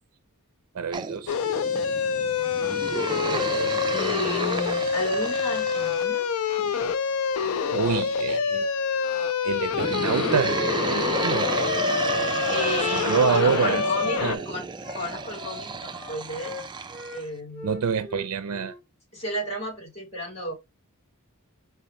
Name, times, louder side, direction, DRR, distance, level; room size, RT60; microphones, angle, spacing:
voice 1, 0.7-1.4 7.7-8.7 9.4-11.5 12.9-14.4 17.6-18.7, right 6 dB, 80° right, 0.4 m, -27 dB
sound 1, 0.9-6.1 9.7-17.2, right 4 dB, 20° right, 0.4 m, -32 dB
sound 2, 1.3-14.4, left 6 dB, 70° left, 0.4 m, -26 dB
voice 2, 3.1-6.3 6.6-6.9 12.5-14.2 14.5-14.6 14.9-16.7 17.1-17.8 19.1-20.5, equal, 30° left, 2.2 m, -33 dB
Wind instrument woodwind instrument, 11.1-14.3 14.8-17.3 17.5-18.8, left 3 dB, 5° left, 1.7 m, -41 dB
4.7 x 2.8 x 3.1 m
head